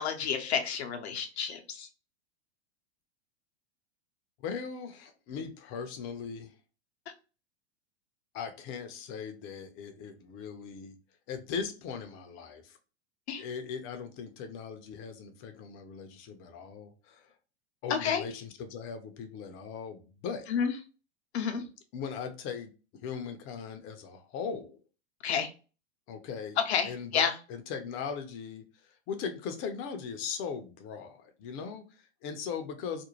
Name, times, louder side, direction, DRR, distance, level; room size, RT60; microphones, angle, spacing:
voice 1, 0.0-1.9 13.3-13.4 17.9-18.2 20.5-20.7 21.3-21.6 25.2-25.5 26.7-27.3, left 7 dB, 75° left, 4 dB, 0.7 m, -30 dB
voice 2, 4.4-6.5 8.3-10.9 11.3-12.8 13.4-17.3 17.8-20.5 21.9-24.8 26.1-26.6 26.8-33.0, left 6 dB, 40° left, 7 dB, 0.6 m, -39 dB
2.5 x 2.1 x 3.1 m, 0.34 s
hypercardioid pair, 105°, 33 cm